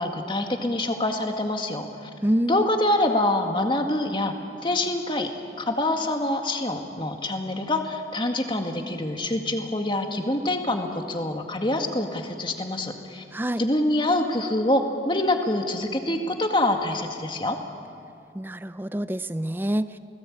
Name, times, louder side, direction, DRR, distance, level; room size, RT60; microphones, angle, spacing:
voice 1, 0.0-2.1 2.5-4.3 4.6-5.3 5.6-13.2 13.6-17.6, left 1 dB, 25° left, 4 dB, 2.0 m, -25 dB
voice 2, 2.2-2.7 13.3-13.6 18.3-20.0, equal, 10° right, 12 dB, 0.5 m, -26 dB
28.5 x 19.5 x 8.7 m, 2.4 s
head